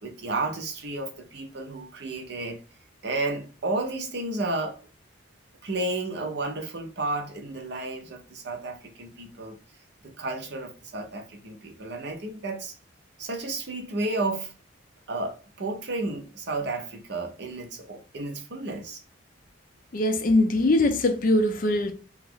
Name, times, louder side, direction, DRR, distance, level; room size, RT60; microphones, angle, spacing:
voice 1, 0.0-2.6 3.0-4.8 5.6-9.6 10.0-12.7 13.2-14.5 15.1-19.0, right 2 dB, 55° right, 0.7 m, -32 dB
voice 2, 19.9-21.9, left 2 dB, 40° left, 0.4 m, -22 dB
2.9 x 2.4 x 3.6 m
head